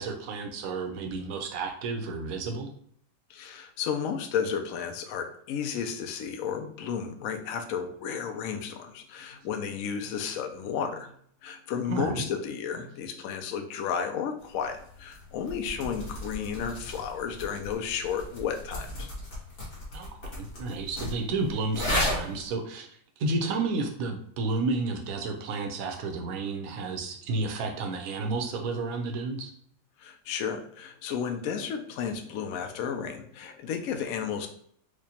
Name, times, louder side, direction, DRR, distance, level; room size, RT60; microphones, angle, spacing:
voice 1, 0.0-2.7 11.9-12.2 19.9-20.1 20.4-22.9 23.2-29.5, right 3 dB, 65° right, 2 dB, 0.8 m, -31 dB
voice 2, 3.3-11.1 11.4-19.1 30.0-34.5, left 7 dB, 85° left, 5 dB, 0.7 m, -33 dB
sound 1, 14.4-22.5, left 1 dB, 50° left, 1.6 m, -35 dB
4.8 x 2.2 x 2.8 m, 0.64 s
omnidirectional pair, 2.0 m